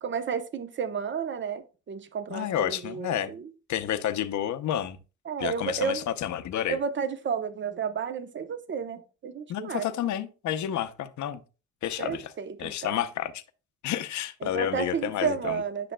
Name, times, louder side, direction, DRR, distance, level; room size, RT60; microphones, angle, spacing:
voice 1, 0.0-3.5 5.2-6.1 6.7-9.9 12.0-13.0 14.4-15.9, right 6 dB, 40° right, 0.9 m, -32 dB
voice 2, 2.3-3.3 3.7-5.0 5.4-6.8 9.5-11.4 11.8-12.3 12.6-13.4 13.8-15.6, left 10 dB, 70° left, 0.8 m, -30 dB
10.0 x 6.0 x 2.3 m
cardioid pair, 90°, 30 cm